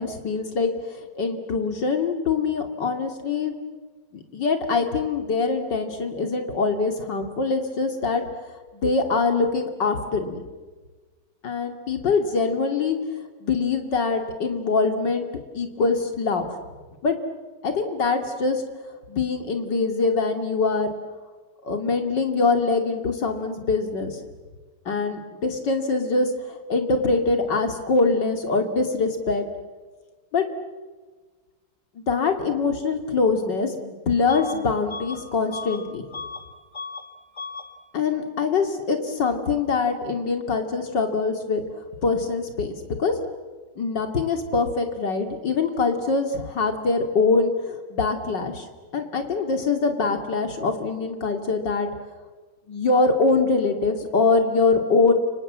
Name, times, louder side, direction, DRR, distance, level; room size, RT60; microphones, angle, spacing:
voice 1, 0.0-3.5 4.3-8.2 8.7-10.4 11.4-13.0 13.4-15.3 15.5-16.6 17.0-17.2 17.6-18.6 19.1-20.9 21.6-24.2 24.8-29.4 30.3-30.5 31.9-36.1 37.9-41.6 42.0-43.1 43.8-48.7 48.9-51.9 52.7-55.1, left 4 dB, 55° left, 6 dB, 3.2 m, -23 dB
Bus / Alarm, 34.3-34.6 34.9-36.5 36.7-37.1 37.3-37.7, left 4 dB, 20° left, 1.9 m, -36 dB
29.5 x 26.0 x 7.6 m, 1.3 s
omnidirectional pair, 2.4 m